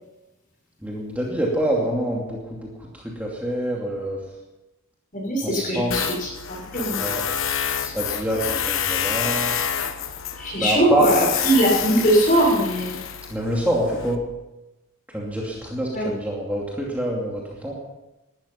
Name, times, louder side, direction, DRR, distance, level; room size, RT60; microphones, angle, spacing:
voice 1, 0.8-2.7 3.0-4.2 5.4-5.9 6.9-7.2 7.8-9.5 10.6-11.0 13.3-14.2 15.1-17.7, right 1 dB, 5° right, -3 dB, 2.5 m, -26 dB
voice 2, 5.1-7.0 10.4-13.0 15.9-16.1, right 1 dB, 40° left, -1 dB, 6.3 m, -21 dB
Tools, 5.9-14.2, left 8 dB, 70° left, 1.2 m, -28 dB
19.0 x 12.5 x 5.8 m, 1.0 s
head